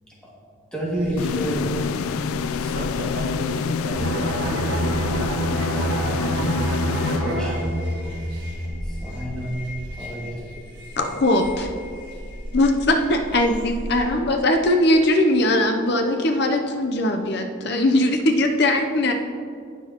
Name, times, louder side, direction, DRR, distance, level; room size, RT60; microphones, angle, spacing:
voice 1, 0.7-1.9 2.4-3.1 3.3-3.4 5.9-6.3 7.2-7.6 8.4-8.5 8.8-9.5 9.9-10.8, right 1 dB, 5° left, -6 dB, 2.1 m, -30 dB
sound 1, 0.9-14.0, equal, 20° right, 1.8 m, -37 dB
sound 2, 1.2-7.9, left 6 dB, 90° left, 0.3 m, -27 dB
voice 2, 2.7-5.6, right 1 dB, 45° right, 3 dB, 0.7 m, -34 dB
sound 3, 4.0-9.3 9.7-9.9, right 1 dB, 90° right, 1.4 m, -27 dB
voice 3, 11.0-11.7 12.5-19.1, left 1 dB, 50° left, 4 dB, 0.6 m, -20 dB
18.0 x 6.2 x 2.9 m, 2.3 s
head